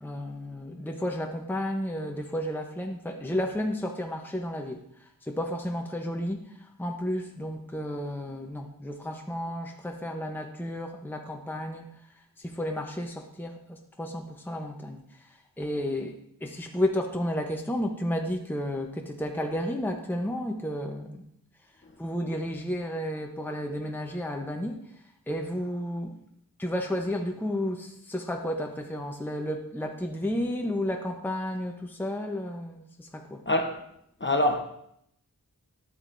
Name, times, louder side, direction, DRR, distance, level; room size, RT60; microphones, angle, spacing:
voice 1, 0.0-11.8 12.4-21.2 22.0-24.9 25.3-26.1 26.6-33.4, left 1 dB, 5° left, 0.8 m, -32 dB
voice 2, 33.5-33.8 34.2-34.6, left 1 dB, 30° left, 1.0 m, -24 dB
11.0 x 7.8 x 2.6 m
wide cardioid pair, 45°, 36 cm